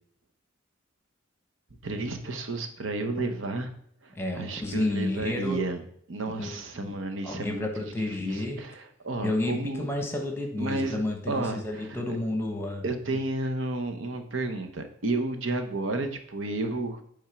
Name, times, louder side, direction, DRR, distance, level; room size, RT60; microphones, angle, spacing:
voice 1, 1.8-3.7 4.0-5.8 6.1-7.9 8.2-9.9 10.6-11.0 11.3-12.2 12.8-17.0, right 2 dB, 80° right, 6 dB, 0.9 m, -32 dB
voice 2, 4.1-5.6 6.4-6.5 6.8-7.0 7.2-8.6 9.2-12.8, left 2 dB, 10° left, 3 dB, 1.1 m, -31 dB
8.7 x 3.6 x 5.9 m, 0.67 s
head